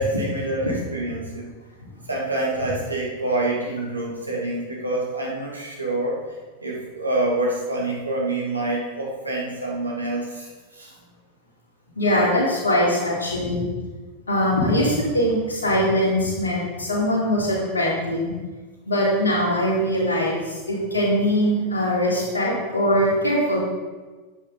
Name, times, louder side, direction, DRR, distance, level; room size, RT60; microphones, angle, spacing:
voice 1, 0.0-1.5 1.8-6.2 6.6-10.9, right 2 dB, 85° right, -3 dB, 2.6 m, -27 dB
voice 2, 11.9-13.7 14.3-18.3 18.9-23.6, equal, 75° left, -4 dB, 3.4 m, -22 dB
11.5 x 8.5 x 4.0 m, 1.3 s
figure-of-eight pair, 90°, 0 cm